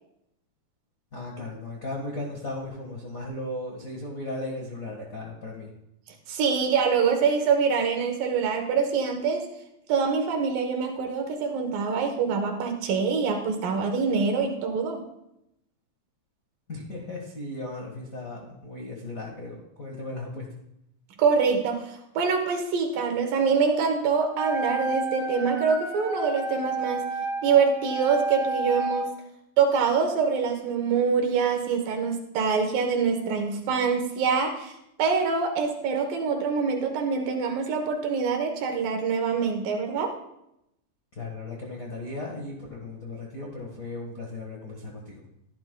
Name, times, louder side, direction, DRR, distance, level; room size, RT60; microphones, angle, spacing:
voice 1, 1.1-5.7 16.7-20.4 41.1-45.1, left 2 dB, 45° left, -2 dB, 1.1 m, -36 dB
voice 2, 6.3-9.5 9.9-15.0 21.2-27.1 27.4-29.1 29.6-34.7 35.0-40.1, right 5 dB, 80° right, 3 dB, 2.8 m, -25 dB
Wind instrument woodwind instrument, 24.3-29.1, right 2 dB, ahead, 1.9 m, -31 dB
15.0 x 12.0 x 2.3 m, 0.82 s
omnidirectional pair, 4.0 m